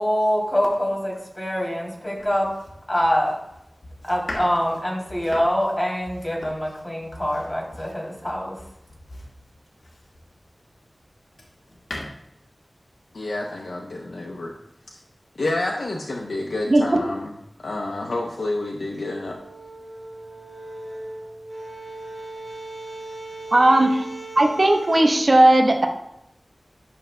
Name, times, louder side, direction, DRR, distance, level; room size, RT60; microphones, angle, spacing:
voice 1, 0.0-2.5 2.9-3.4 4.0-8.6, equal, 20° left, -2 dB, 2.9 m, -24 dB
Domestic sounds home sounds, 2.2-10.4 10.9-12.1, left 1 dB, 70° left, 1.7 m, -41 dB
voice 2, 13.1-14.5 14.9-15.0 15.4-17.3 17.6-19.4, left 2 dB, 85° left, -1 dB, 0.7 m, -29 dB
sound 1, 18.9-25.1, right 2 dB, 30° right, 2.4 m, -38 dB
voice 3, 23.5-24.0 24.4-25.9, right 1 dB, 55° right, 3 dB, 0.9 m, -16 dB
11.0 x 6.3 x 2.2 m, 0.84 s
cardioid pair, 40°, 0 cm